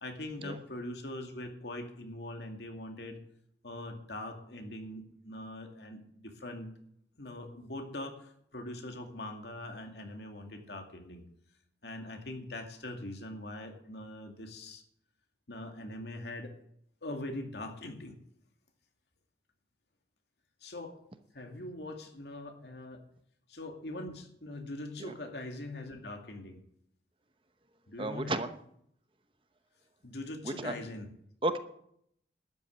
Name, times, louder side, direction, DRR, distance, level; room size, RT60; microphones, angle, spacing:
voice 1, 0.0-3.2 3.6-6.7 7.2-11.2 11.8-14.8 15.5-16.5 17.0-18.2 20.6-21.0 21.3-23.0 23.5-26.6 27.9-28.4 30.0-31.1, left 1 dB, 75° left, 4 dB, 2.3 m, -42 dB
voice 2, 28.0-28.5 30.4-30.7 31.4-31.6, right 2 dB, 30° right, 9 dB, 0.8 m, -33 dB
12.5 x 8.3 x 8.6 m, 0.71 s
head